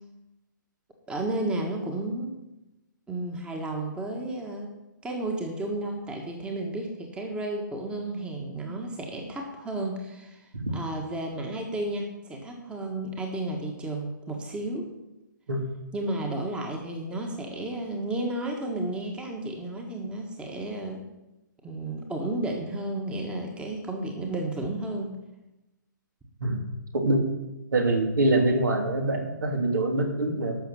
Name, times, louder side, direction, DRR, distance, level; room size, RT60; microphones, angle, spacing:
voice 1, 1.1-2.4 3.1-4.7 5.0-14.9 15.9-21.0 21.6-25.1, right 2 dB, 10° right, 2 dB, 1.6 m, -32 dB
voice 2, 26.9-27.3 27.7-30.6, right 2 dB, 65° right, 3 dB, 2.8 m, -24 dB
12.0 x 6.5 x 7.5 m, 0.96 s
figure-of-eight pair, 135°, 11 cm